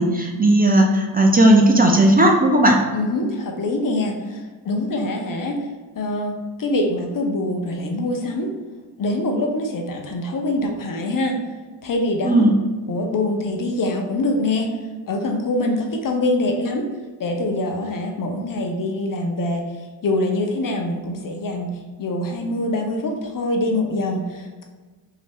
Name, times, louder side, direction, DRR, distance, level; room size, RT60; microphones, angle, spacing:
voice 1, 0.0-2.8 12.2-12.6, right 1 dB, 25° right, 1 dB, 0.5 m, -15 dB
voice 2, 2.9-5.7 6.0-8.5 9.0-11.4 11.8-12.5 12.9-14.7 15.1-16.9 17.2-24.6, left 1 dB, 55° left, 2 dB, 0.6 m, -24 dB
3.1 x 2.8 x 3.4 m, 1.3 s
cardioid pair, 75°, 40 cm